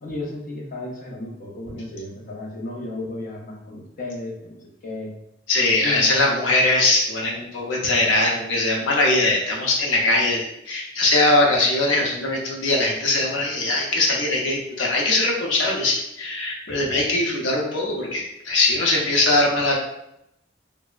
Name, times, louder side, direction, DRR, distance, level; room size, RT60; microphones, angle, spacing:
voice 1, 0.0-5.1 5.8-6.5, left 2 dB, 45° left, -2 dB, 0.7 m, -34 dB
voice 2, 5.5-19.8, left 2 dB, 85° left, -1 dB, 0.7 m, -21 dB
3.3 x 2.0 x 2.4 m, 0.81 s
head